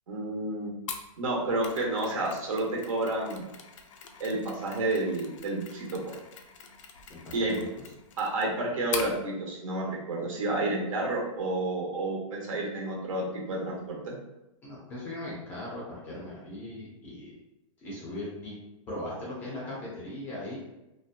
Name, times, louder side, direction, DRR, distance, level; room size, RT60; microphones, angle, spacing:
voice 1, 0.1-0.7 1.2-3.5 4.2-6.2 7.3-7.5 8.2-14.2, right 2 dB, 75° right, -2 dB, 1.0 m, -30 dB
Mechanisms, 0.9-9.2, left 6 dB, 65° left, 0.4 m, -43 dB
voice 2, 7.1-7.8 14.6-17.3 17.8-18.5 18.9-20.6, left 1 dB, 10° left, -6 dB, 0.4 m, -39 dB
2.7 x 2.3 x 2.4 m, 0.96 s
supercardioid pair, 175°, 17 cm